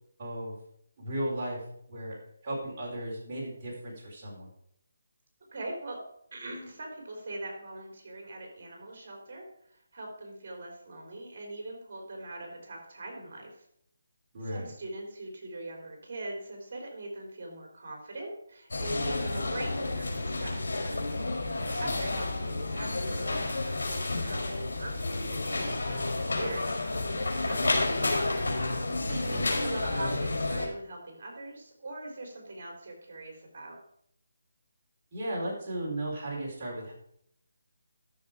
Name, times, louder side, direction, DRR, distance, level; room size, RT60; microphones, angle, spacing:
voice 1, 0.2-0.6 1.0-1.6 1.9-2.2 2.4-4.5 14.3-14.7 21.6-22.0 29.1-29.5 35.1-36.9, right 1 dB, 25° right, -6 dB, 4.1 m, -35 dB
voice 2, 5.5-6.0 6.3-13.6 14.4-20.8 21.5-27.9 29.1-33.8, right 2 dB, 45° right, 1 dB, 3.9 m, -41 dB
sound 1, 18.7-30.7, left 2 dB, 85° left, 4.2 m, -30 dB
12.5 x 6.9 x 4.9 m, 0.70 s
hypercardioid pair, 170°, 0 cm